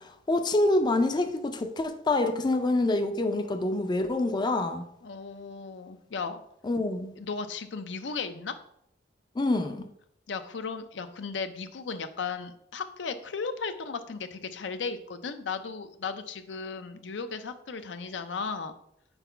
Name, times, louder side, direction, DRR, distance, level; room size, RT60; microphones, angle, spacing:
voice 1, 0.0-4.8 6.6-7.1 9.4-9.9, left 2 dB, 25° left, 0.4 m, -26 dB
voice 2, 5.0-6.4 7.2-8.6 10.3-18.7, left 5 dB, 80° left, 0.5 m, -35 dB
4.5 x 4.1 x 5.6 m
head